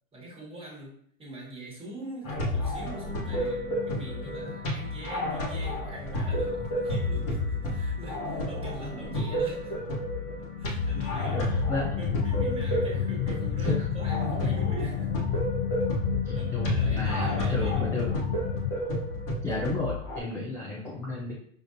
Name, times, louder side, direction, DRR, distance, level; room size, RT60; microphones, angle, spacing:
voice 1, 0.1-9.7 10.6-11.6 12.0-15.1 16.3-18.1, right 1 dB, 15° right, -3 dB, 1.3 m, -42 dB
sound 1, 2.2-20.2, left 1 dB, 35° left, 1.1 m, -31 dB
sound 2, 2.9-19.3, left 6 dB, 85° left, 0.9 m, -43 dB
sound 3, 10.9-18.7, left 8 dB, 60° left, 0.6 m, -31 dB
voice 2, 11.3-12.0 12.9-13.1 13.7-13.8 16.2-18.1 19.4-21.3, left 2 dB, 5° left, -5 dB, 0.3 m, -33 dB
5.1 x 2.5 x 2.5 m, 0.62 s
hypercardioid pair, 120°, 41 cm